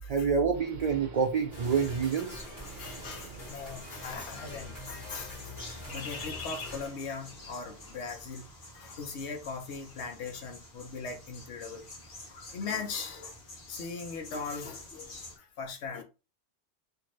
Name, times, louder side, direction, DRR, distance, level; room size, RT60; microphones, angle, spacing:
voice 1, 0.1-2.4, right 6 dB, 90° right, 0.3 m, -27 dB
Subway metro underground, 0.5-8.1, right 4 dB, 65° right, 0.9 m, -52 dB
sound 1, 1.5-6.9, left 1 dB, 15° left, 1.5 m, -45 dB
sound 2, 1.6-15.4, left 3 dB, 50° left, 1.1 m, -47 dB
voice 2, 2.4-5.6 5.9-11.8 12.3-13.4 13.7-16.0, left 5 dB, 70° left, 1.0 m, -40 dB
2.8 x 2.5 x 3.0 m
omnidirectional pair, 1.2 m